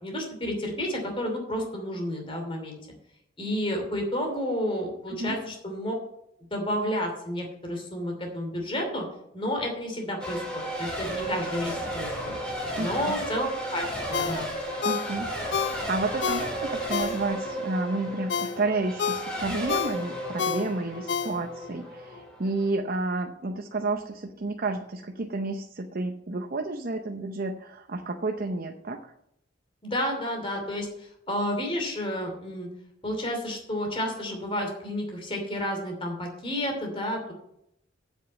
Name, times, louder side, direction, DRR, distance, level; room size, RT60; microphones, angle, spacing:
voice 1, 0.0-2.8 3.4-5.9 6.5-9.0 9.3-12.4 12.8-14.5 29.8-32.7 33.0-37.3, equal, 25° left, 3 dB, 2.8 m, -31 dB
Race car auto racing / Accelerating revving vroom / Mechanisms, 10.2-22.7, right 1 dB, 5° left, 2.8 m, -34 dB
voice 2, 12.8-13.2 14.8-29.1, right 2 dB, 50° right, 4 dB, 0.7 m, -31 dB
Ringtone, 14.1-17.6 18.0-21.7 22.1-22.2, left 7 dB, 60° left, 0.5 m, -31 dB
8.2 x 7.0 x 8.0 m, 0.78 s
head